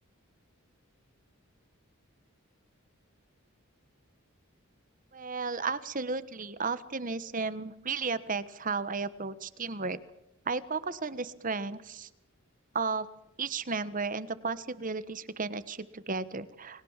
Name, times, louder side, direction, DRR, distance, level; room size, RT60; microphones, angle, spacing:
voice 1, 5.1-10.0 10.4-12.1 12.7-13.1 13.4-16.8, right 4 dB, 40° right, 14 dB, 1.3 m, -34 dB
30.0 x 21.0 x 7.4 m, 0.87 s
head